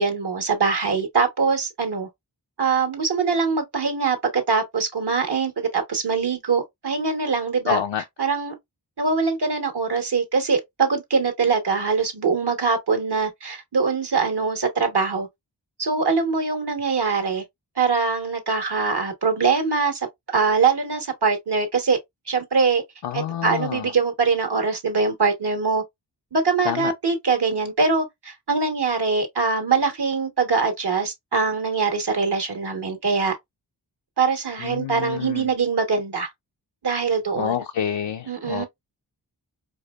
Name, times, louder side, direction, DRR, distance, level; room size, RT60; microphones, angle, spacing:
voice 1, 0.0-2.1 2.6-7.8 8.2-8.5 9.0-15.3 15.8-17.4 17.8-20.1 20.3-22.0 22.3-22.8 23.1-25.8 26.3-33.4 34.2-36.3 36.8-37.5 38.3-38.7, right 4 dB, 65° right, 1.3 m, -23 dB
voice 2, 7.7-8.0 23.0-23.9 26.6-26.9 34.6-35.5 37.3-38.6, left 10 dB, 80° left, 0.5 m, -27 dB
4.7 x 2.3 x 2.3 m
cardioid pair, 50°, 42 cm